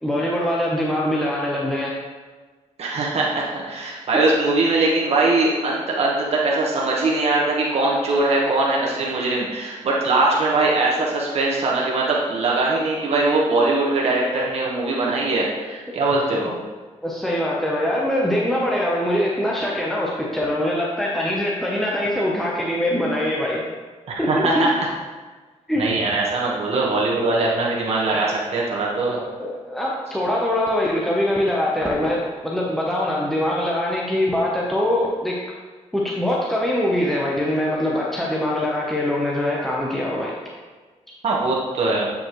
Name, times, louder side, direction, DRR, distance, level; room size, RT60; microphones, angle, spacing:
voice 1, 0.0-1.9 16.0-16.1 17.0-23.6 24.2-24.7 25.7-25.9 26.5-26.6 28.1-28.2 29.4-35.4 35.9-40.4, left 1 dB, ahead, -4 dB, 0.8 m, -23 dB
voice 2, 2.8-16.6 24.2-24.9 25.8-29.2 41.2-42.1, right 2 dB, 55° right, -4 dB, 1.2 m, -21 dB
8.3 x 5.2 x 3.1 m, 1.3 s
cardioid pair, 130°, 13 cm